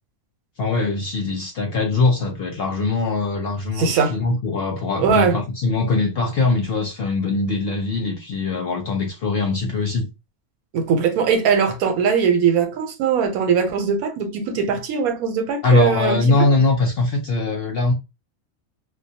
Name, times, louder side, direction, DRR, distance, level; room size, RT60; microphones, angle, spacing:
voice 1, 0.6-10.1 15.6-17.9, left 3 dB, 75° left, 0.5 m, -21 dB
voice 2, 3.8-4.2 5.0-5.4 10.7-16.4, right 6 dB, 85° right, 1.1 m, -20 dB
2.3 x 2.2 x 2.6 m
omnidirectional pair, 1.5 m